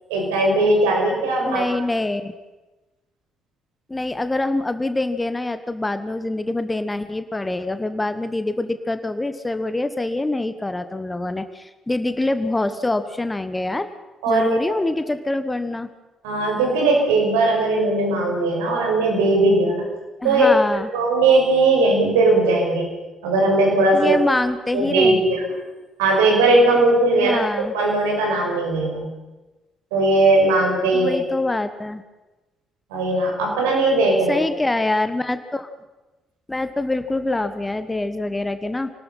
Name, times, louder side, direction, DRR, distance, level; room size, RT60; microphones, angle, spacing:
voice 1, 0.1-1.6 14.2-14.8 16.2-19.8 20.2-20.5 20.9-22.9 23.2-24.2 24.7-25.4 26.0-27.4 27.7-29.1 29.9-31.2 32.9-34.4, right 2 dB, 70° right, 0 dB, 5.6 m, -18 dB
voice 2, 1.4-2.3 3.9-13.9 14.3-15.9 20.2-20.9 23.9-25.2 27.2-27.8 30.9-32.0 34.3-35.7 36.5-38.9, left 2 dB, 15° left, 11 dB, 1.5 m, -25 dB
27.0 x 19.5 x 5.7 m, 1.1 s
figure-of-eight pair, 45°, 0 cm